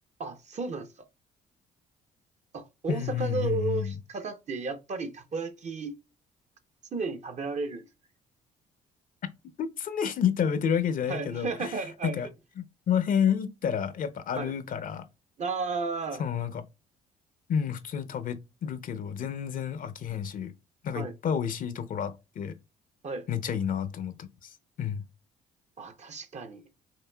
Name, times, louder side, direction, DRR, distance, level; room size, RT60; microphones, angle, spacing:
voice 1, 0.2-0.9 2.5-5.9 6.9-7.9 11.1-12.2 14.3-14.5 15.4-16.2 20.9-21.1 23.0-23.3 25.8-26.6, right 4 dB, 45° right, 0.8 m, -33 dB
voice 2, 2.9-3.9 9.6-12.3 12.6-15.1 16.2-16.6 17.5-20.5 20.8-22.6 23.3-25.0, left 8 dB, 55° left, 0.7 m, -30 dB
5.7 x 2.6 x 2.2 m
supercardioid pair, 60°, 17 cm